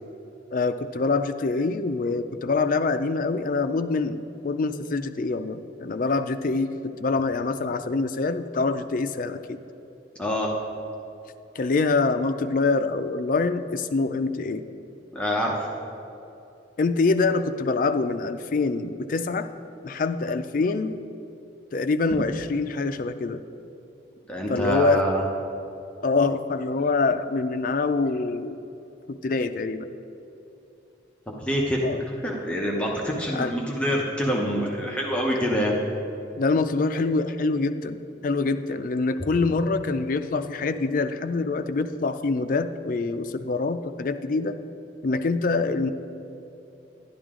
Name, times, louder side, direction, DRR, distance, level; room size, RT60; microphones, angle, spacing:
voice 1, 0.5-9.6 11.6-14.6 16.8-19.5 19.8-21.0 21.7-23.4 24.5-25.1 26.0-28.6 29.1-29.9 31.8-32.0 33.3-33.5 36.4-44.6 45.0-45.9, left 3 dB, 45° left, 9 dB, 0.4 m, -25 dB
voice 2, 10.2-10.5 15.1-15.7 24.3-25.2 31.3-35.8, equal, 5° left, -2 dB, 0.8 m, -26 dB
11.0 x 10.5 x 3.7 m, 2.9 s
head